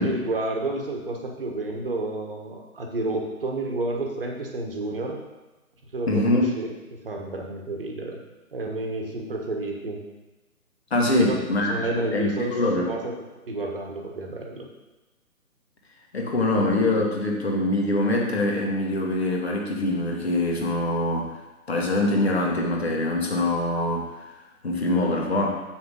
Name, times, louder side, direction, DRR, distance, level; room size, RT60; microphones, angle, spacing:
voice 1, 0.0-5.2 5.9-8.2 8.5-10.0 11.1-12.5 12.8-13.2 13.5-14.7, right 2 dB, 40° right, 1 dB, 1.4 m, -30 dB
voice 2, 6.1-6.5 10.9-12.9 16.1-21.3 21.7-24.1 24.6-25.5, left 2 dB, 45° left, -1 dB, 1.9 m, -24 dB
7.7 x 5.7 x 5.3 m, 1.1 s
figure-of-eight pair, 145°, 44 cm